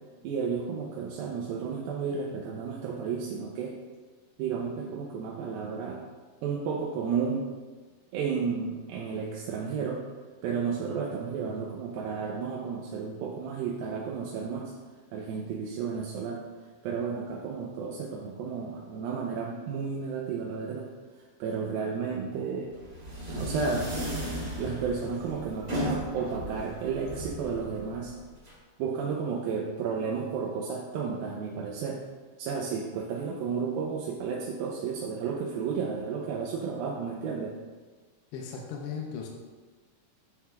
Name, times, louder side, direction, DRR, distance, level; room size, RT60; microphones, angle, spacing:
voice 1, 0.2-3.7 4.4-6.1 6.4-7.5 8.1-10.0 10.4-14.7 15.1-16.4 16.8-20.9 21.4-22.7 23.4-23.9 24.6-28.1 28.8-32.0 32.4-37.5, right 5 dB, 80° right, -1 dB, 2.3 m, -32 dB
sound 1, 22.7-28.5, equal, 30° right, 2.3 m, -36 dB
voice 2, 38.3-39.3, left 6 dB, 85° left, 0 dB, 2.7 m, -37 dB
10.0 x 7.6 x 2.3 m, 1.4 s
omnidirectional pair, 4.6 m